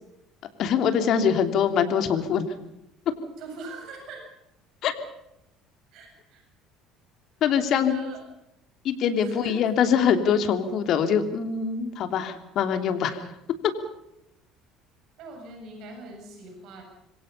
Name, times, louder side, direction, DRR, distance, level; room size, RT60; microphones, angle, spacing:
voice 1, 0.6-2.5 4.8-4.9 7.4-7.9 8.8-13.2, left 7 dB, 55° left, 7 dB, 3.0 m, -23 dB
voice 2, 3.4-4.2 5.9-6.4 7.6-8.2 9.2-9.6 15.2-16.8, right 3 dB, 60° right, 3 dB, 7.8 m, -42 dB
27.0 x 23.5 x 5.6 m, 0.85 s
hypercardioid pair, 60°, 0 cm